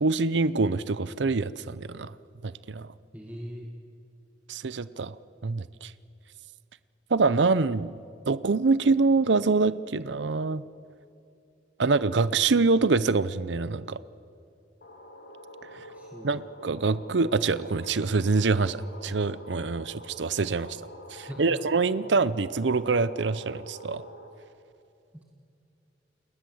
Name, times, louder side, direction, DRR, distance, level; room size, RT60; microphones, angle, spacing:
voice 1, 0.0-2.1 2.4-2.9 4.5-5.2 5.4-5.9 7.1-8.0 8.3-10.6 11.8-14.0 16.2-18.8 19.0-20.8 21.1-24.0, right 4 dB, 80° right, 17 dB, 0.7 m, -25 dB
voice 2, 3.1-3.7 15.9-16.4 21.2-21.6, equal, 10° right, 1 dB, 1.9 m, -41 dB
sound 1, 14.8-24.3, equal, 65° left, 3.4 m, -46 dB
28.5 x 20.5 x 7.9 m, 2.6 s
head